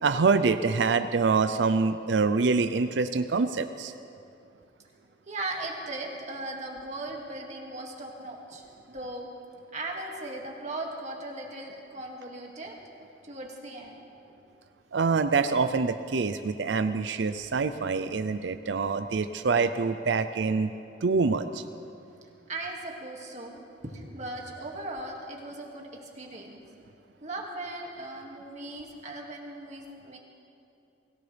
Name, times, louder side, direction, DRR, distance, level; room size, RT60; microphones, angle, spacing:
voice 1, 0.0-3.9 14.9-20.7 21.0-21.6, right 4 dB, 75° right, 9 dB, 0.5 m, -25 dB
voice 2, 5.0-9.3 9.7-12.8 13.2-14.0 22.5-26.6 27.2-30.2, right 2 dB, 40° right, 0 dB, 2.2 m, -38 dB
24.0 x 17.5 x 3.4 m, 2.7 s
head